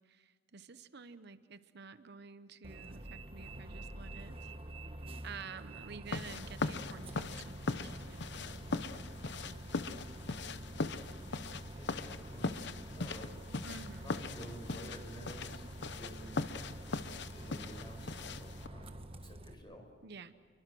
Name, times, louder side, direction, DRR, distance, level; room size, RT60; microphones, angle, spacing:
voice 1, 0.0-4.5 5.2-8.2 13.6-14.3 20.0-20.3, right 5 dB, 60° right, 11 dB, 0.9 m, -50 dB
Bus, 2.6-19.5, right 1 dB, 30° right, 1.5 m, -47 dB
sound 1, 6.1-18.7, left 3 dB, 65° left, 0.9 m, -40 dB
voice 2, 8.3-8.6 9.2-10.1 11.7-13.3 14.0-16.5 17.3-19.9, equal, 25° left, 5 dB, 4.8 m, -52 dB
28.5 x 23.5 x 6.2 m, 2.1 s
head